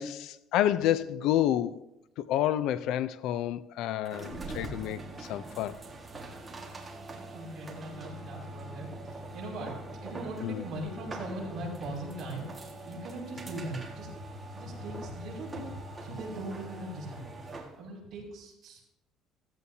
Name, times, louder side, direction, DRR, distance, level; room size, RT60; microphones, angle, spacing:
voice 1, 0.0-1.8 2.2-5.8 10.4-10.6, left 12 dB, 60° left, 0.4 m, -29 dB
sound 1, 4.0-17.8, right 2 dB, 15° right, 1.7 m, -43 dB
voice 2, 7.1-9.7 10.0-14.1 14.5-15.6 16.0-18.9, right 1 dB, 30° right, 6.0 m, -40 dB
15.5 x 15.0 x 2.8 m
cardioid pair, 170°, 0 cm